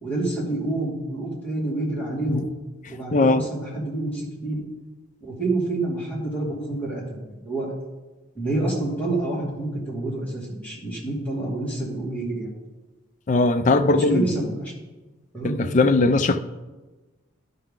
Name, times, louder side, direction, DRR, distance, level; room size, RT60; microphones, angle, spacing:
voice 1, 0.0-2.5 2.9-4.6 5.2-7.7 8.3-12.5 13.9-14.7 15.3-15.6, right 2 dB, 5° left, -7 dB, 2.4 m, -28 dB
voice 2, 3.1-3.4 13.3-14.3 15.4-16.4, left 3 dB, 35° left, 9 dB, 0.4 m, -19 dB
12.0 x 5.7 x 3.7 m, 1.2 s
head